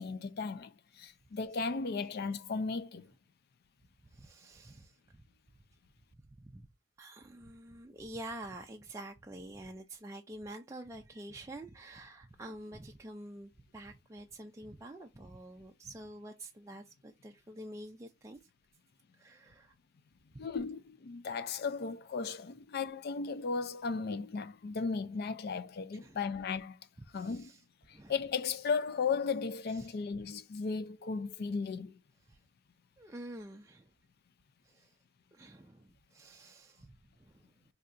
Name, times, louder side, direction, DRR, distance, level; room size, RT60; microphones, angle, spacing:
voice 1, 0.0-3.1 20.4-26.8 27.1-27.5 27.9-32.0, left 5 dB, 55° left, 0.4 m, -36 dB
voice 2, 4.0-5.2 6.4-6.7 7.0-18.4 19.1-19.7 20.3-20.5 22.2-22.4 25.9-26.2 27.1-27.6 27.9-28.2 29.7-29.9 32.3-32.4 33.0-33.9 34.6-34.9 35.3-37.6, right 1 dB, 15° right, 0.3 m, -48 dB
4.4 x 2.8 x 2.5 m
head